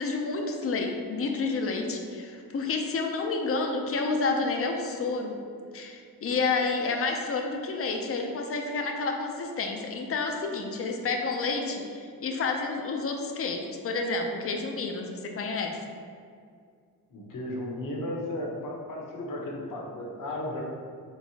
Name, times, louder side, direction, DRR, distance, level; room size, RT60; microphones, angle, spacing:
voice 1, 0.0-5.4 5.7-15.8, left 3 dB, 40° left, 3 dB, 0.5 m, -30 dB
voice 2, 17.1-20.6, left 1 dB, 60° left, -2 dB, 1.1 m, -34 dB
4.5 x 3.9 x 2.8 m, 2.2 s
cardioid pair, 95°, 37 cm